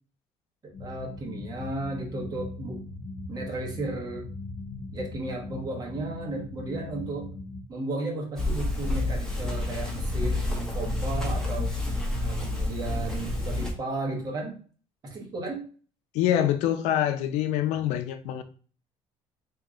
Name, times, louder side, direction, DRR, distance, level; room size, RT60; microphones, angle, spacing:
voice 1, 0.6-2.8 3.3-4.3 4.9-7.3 7.7-11.7 12.2-14.6 15.0-15.7, right 2 dB, 35° right, 1.2 m, -34 dB
sound 1, 0.7-7.6, left 2 dB, 35° left, 0.6 m, -39 dB
sound 2, 8.4-13.7, left 2 dB, 5° left, 1.0 m, -29 dB
voice 2, 16.1-18.4, left 11 dB, 80° left, 0.5 m, -25 dB
3.5 x 2.8 x 3.7 m
cardioid pair, 145°, 12 cm